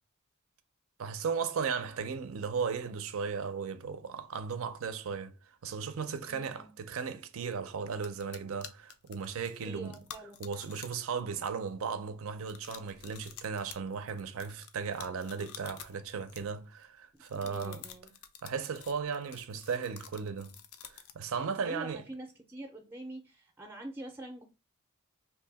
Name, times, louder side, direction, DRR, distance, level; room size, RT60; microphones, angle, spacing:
voice 1, 1.0-5.3 5.6-10.0 10.4-17.8 18.4-20.6 20.8-22.0, right 6 dB, 65° right, 0.4 m, -36 dB
voice 2, 6.2-6.7 9.6-10.4 17.1-18.1 21.6-24.4, right 2 dB, 10° right, 0.5 m, -45 dB
sound 1, 7.5-7.6 7.9-11.1 11.4-11.8 12.4-16.8 17.2-21.3, left 8 dB, 85° left, 0.5 m, -50 dB
2.7 x 2.6 x 3.9 m
head